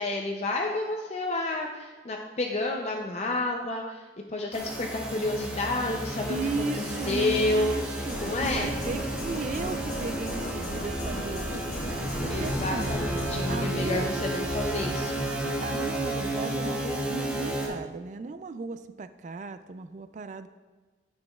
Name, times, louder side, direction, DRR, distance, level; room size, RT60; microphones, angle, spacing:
voice 1, 0.0-6.7 7.1-7.8 8.2-8.7 12.3-15.1, left 2 dB, 35° left, 2 dB, 0.4 m, -30 dB
sound 1, 4.5-17.7, right 1 dB, 5° right, 0.9 m, -32 dB
voice 2, 6.3-11.8 12.2-13.0 13.5-14.1 15.4-20.5, right 3 dB, 45° right, 11 dB, 0.3 m, -36 dB
sound 2, 8.1-13.5, left 1 dB, 55° left, 1.3 m, -37 dB
sound 3, 10.7-15.7, right 1 dB, 85° right, 1.2 m, -42 dB
9.6 x 6.2 x 2.3 m, 1.3 s
head